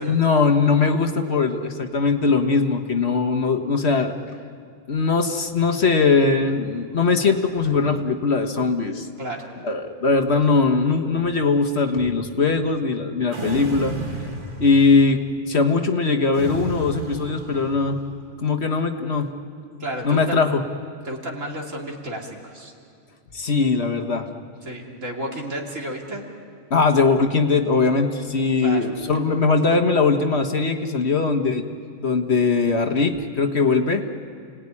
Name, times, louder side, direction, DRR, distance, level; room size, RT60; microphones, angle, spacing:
voice 1, 0.0-4.1 4.9-9.1 9.6-13.9 14.6-15.2 15.5-18.0 18.4-19.3 20.0-20.6 23.3-24.3 26.7-31.6 32.0-34.0, left 4 dB, 50° left, 5 dB, 1.5 m, -20 dB
sound 1, 13.3-15.2 16.3-18.1, right 3 dB, 40° right, 1.8 m, -33 dB
voice 2, 19.8-20.4 21.1-22.7 24.6-26.2 28.6-28.9, right 1 dB, 65° right, -1 dB, 3.4 m, -32 dB
30.0 x 18.5 x 9.8 m, 2.3 s
omnidirectional pair, 1.4 m